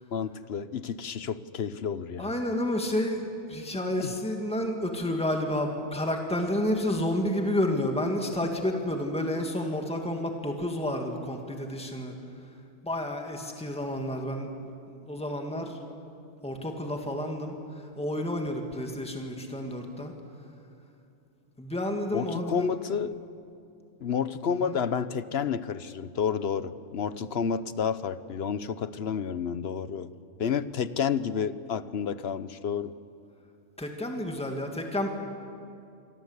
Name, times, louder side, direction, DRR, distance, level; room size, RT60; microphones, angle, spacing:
voice 1, 0.1-2.3 4.0-4.1 22.1-23.2 24.0-30.1 30.4-32.9, left 7 dB, 60° left, 14 dB, 1.0 m, -30 dB
voice 2, 2.2-12.2 12.8-15.8 16.4-20.1 21.6-22.7 24.5-24.8 33.8-35.1, left 1 dB, 5° left, 3 dB, 2.2 m, -30 dB
26.5 x 24.0 x 8.2 m, 2.5 s
omnidirectional pair, 1.2 m